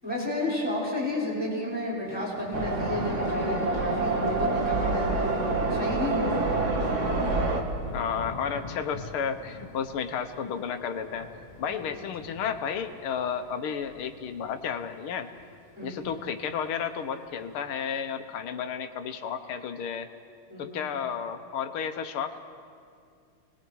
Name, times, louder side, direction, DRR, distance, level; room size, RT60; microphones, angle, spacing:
voice 1, 0.0-6.5 11.6-12.1 15.7-16.1 20.5-20.8, left 1 dB, 5° right, -6 dB, 5.9 m, -32 dB
Thunder / Rain, 2.1-17.8, left 2 dB, 20° left, 1.8 m, -45 dB
sound 1, 2.5-7.6, right 3 dB, 40° right, 1.7 m, -27 dB
voice 2, 7.9-11.3 11.6-15.3 15.8-20.1 20.6-22.4, left 7 dB, 80° left, 8 dB, 1.9 m, -32 dB
29.5 x 20.5 x 4.7 m, 2.3 s
omnidirectional pair, 2.3 m